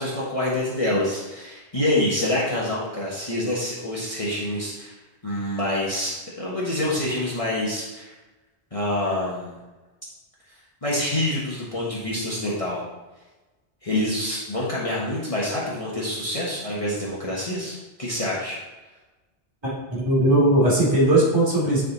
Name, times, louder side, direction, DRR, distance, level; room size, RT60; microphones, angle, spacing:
voice 1, 0.0-5.0 5.2-8.1 8.7-9.5 10.8-12.8 13.8-18.6, left 1 dB, 35° left, -7 dB, 1.3 m, -26 dB
voice 2, 19.6-21.8, right 1 dB, 25° right, -7 dB, 2.7 m, -19 dB
9.8 x 3.8 x 4.0 m, 1.2 s
omnidirectional pair, 1.1 m